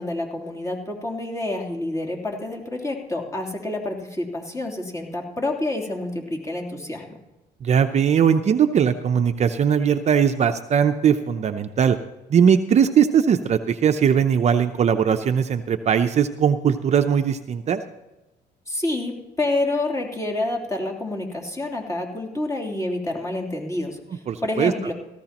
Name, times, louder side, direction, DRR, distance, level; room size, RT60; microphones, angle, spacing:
voice 1, 0.0-7.1 18.7-24.9, left 2 dB, 20° left, 0 dB, 3.2 m, -28 dB
voice 2, 7.6-12.0 12.3-17.8 24.3-24.7, right 7 dB, 40° right, 8 dB, 0.7 m, -19 dB
17.5 x 15.0 x 3.0 m, 1.0 s
cardioid pair, 110°, 17 cm